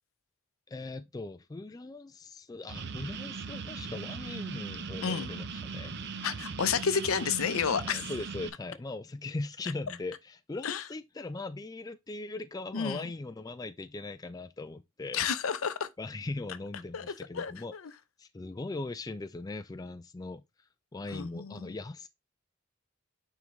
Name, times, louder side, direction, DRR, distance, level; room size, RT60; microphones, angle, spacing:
voice 1, 0.7-5.9 7.8-15.2 16.0-17.7 18.2-20.4 20.9-22.1, left 2 dB, 15° left, 0.3 m, -39 dB
sound 1, 2.7-8.5, right 5 dB, 55° right, 0.7 m, -39 dB
voice 2, 6.2-8.1 10.6-10.8 12.7-13.1 15.1-15.9 16.9-17.9 21.1-21.8, left 6 dB, 80° left, 0.6 m, -31 dB
9.2 x 3.7 x 3.1 m
head